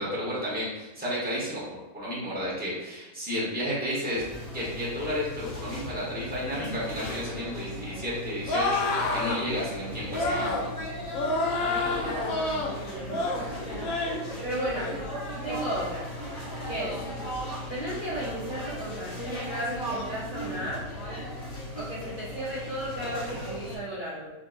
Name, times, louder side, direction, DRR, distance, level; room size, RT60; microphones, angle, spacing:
voice 1, 0.0-4.2 4.5-10.6, equal, 5° right, -7 dB, 1.2 m, -32 dB
sound 1, 4.1-23.8, equal, 40° left, 1.2 m, -37 dB
sound 2, 8.5-9.4 10.1-10.7 11.1-12.7 13.1-13.4 13.8-14.2 14.6-14.9, left 2 dB, 75° left, 1.1 m, -28 dB
voice 2, 11.6-13.9 14.4-15.1 15.4-16.1 16.7-17.0 17.7-20.8 21.7-24.3, right 1 dB, 40° right, -9 dB, 0.9 m, -34 dB
4.5 x 3.1 x 2.6 m, 1.0 s
omnidirectional pair, 1.5 m